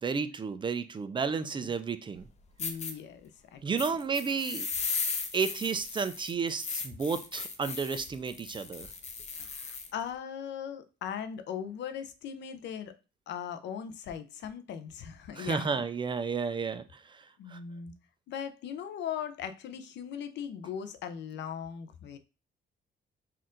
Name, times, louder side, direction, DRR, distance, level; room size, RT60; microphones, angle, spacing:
voice 1, 0.0-2.3 3.6-4.7 5.3-8.9 15.4-17.0 17.5-17.6, right 5 dB, 25° right, 0.4 m, -32 dB
voice 2, 1.3-1.7 2.6-3.6 3.9-4.0 9.3-12.9 13.3-15.8 17.4-17.9 18.3-22.2, left 8 dB, 80° left, 0.6 m, -39 dB
sound 1, 2.2-2.3 2.6-2.9 3.8-9.9, left 4 dB, 40° left, 0.7 m, -36 dB
4.3 x 2.5 x 3.7 m
cardioid pair, 140°, 18 cm